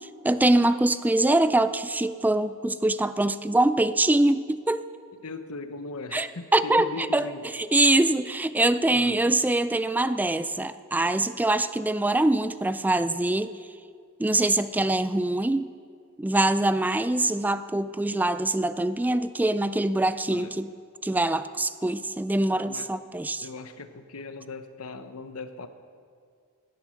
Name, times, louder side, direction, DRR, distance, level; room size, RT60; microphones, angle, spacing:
voice 1, 0.0-4.8 6.1-7.3 7.5-13.5 14.2-15.7 16.2-20.7 21.0-23.5, right 2 dB, 10° right, 13 dB, 0.3 m, -24 dB
voice 2, 5.2-7.5 8.9-9.3 20.3-20.6 22.6-22.9 23.4-25.7, left 3 dB, 80° left, 10 dB, 0.9 m, -39 dB
17.5 x 11.0 x 6.4 m, 2.2 s
head